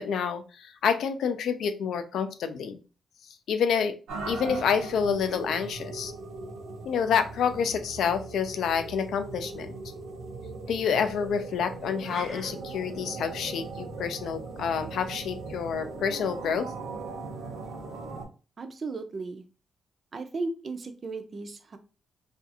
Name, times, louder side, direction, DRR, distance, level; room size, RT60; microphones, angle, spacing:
voice 1, 0.0-2.8 3.5-4.0 4.3-6.1 6.9-9.7 10.7-16.7, left 7 dB, 80° left, 9 dB, 0.4 m, -28 dB
sound 1, 4.1-18.3, right 3 dB, 85° right, 0.7 m, -39 dB
sound 2, 12.0-12.5, left 2 dB, 40° left, 0.7 m, -41 dB
voice 2, 18.6-19.4 20.1-21.8, right 3 dB, 40° right, 8 dB, 0.4 m, -35 dB
2.4 x 2.4 x 2.7 m, 0.34 s
wide cardioid pair, 140°, 0 cm